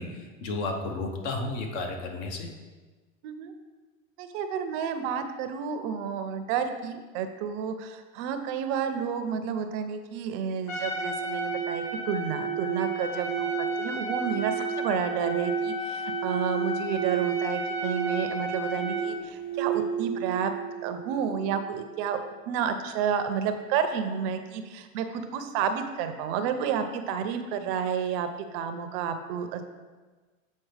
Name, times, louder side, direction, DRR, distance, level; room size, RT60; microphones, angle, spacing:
voice 1, 0.0-2.5, left 2 dB, 55° left, 4 dB, 1.1 m, -32 dB
voice 2, 4.2-20.5 20.8-22.2 22.5-29.6, right 7 dB, 50° right, 8 dB, 0.6 m, -31 dB
Trumpet, 10.7-19.1, left 1 dB, 75° left, 1.4 m, -34 dB
sound 1, 10.9-22.0, right 9 dB, 30° left, 1.3 m, -33 dB
7.4 x 4.2 x 3.3 m, 1.3 s
hypercardioid pair, 120°, 40 cm